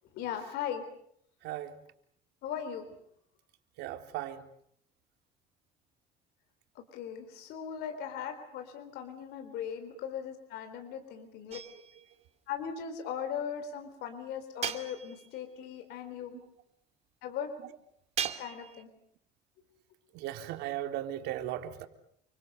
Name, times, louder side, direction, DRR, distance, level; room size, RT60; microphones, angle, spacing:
voice 1, 0.1-0.8 2.4-2.9 6.8-11.6 12.5-16.4 17.2-17.5 18.4-18.9, left 8 dB, 75° left, 7 dB, 4.1 m, -38 dB
voice 2, 1.4-1.8 3.8-4.5 11.2-11.3 16.3-16.5 20.1-21.9, right 12 dB, 85° right, 6 dB, 3.5 m, -37 dB
sound 1, 11.5-12.2 14.6-15.4 18.2-18.8, right 8 dB, 40° right, 2.6 m, -37 dB
29.5 x 25.0 x 6.8 m, 0.69 s
cardioid pair, 130°, 17 cm